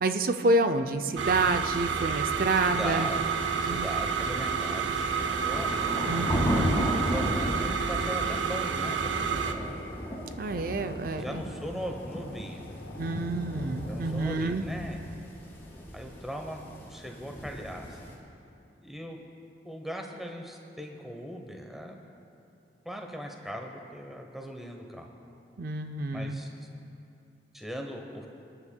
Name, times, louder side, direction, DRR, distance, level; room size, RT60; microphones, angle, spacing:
voice 1, 0.0-3.1 3.6-3.9 6.1-6.9 10.4-11.4 13.0-14.7 25.6-26.4, right 2 dB, 50° right, 8 dB, 0.4 m, -28 dB
sound 1, 1.2-9.5, right 6 dB, 90° right, 0.6 m, -30 dB
sound 2, 2.1-14.5, left 2 dB, 60° left, 0.6 m, -48 dB
voice 2, 2.5-5.7 6.7-9.3 11.1-12.6 13.8-15.3 15.9-16.6 16.9-18.1 18.8-19.2 19.6-22.0 22.8-25.1 26.1-26.5 27.5-28.3, equal, ahead, 2 dB, 0.8 m, -39 dB
sound 3, 2.9-18.1, equal, 15° left, 1.7 m, -35 dB
25.0 x 10.0 x 2.2 m, 2.6 s
head